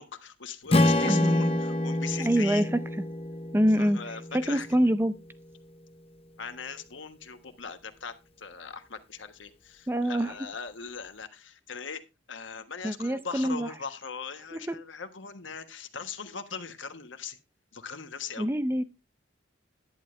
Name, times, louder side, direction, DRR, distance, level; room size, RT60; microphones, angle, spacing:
voice 1, 0.0-2.7 3.8-4.7 6.4-12.0 12.3-17.4 17.7-18.5, left 6 dB, 80° left, 1.3 m, -40 dB
Strum, 0.7-5.0, left 1 dB, 30° left, 0.7 m, -27 dB
voice 2, 1.0-1.6 2.2-2.8 3.5-5.1 9.9-10.3 12.8-13.7 14.5-14.8 18.4-18.8, equal, 10° right, 0.5 m, -26 dB
11.0 x 9.4 x 3.2 m
head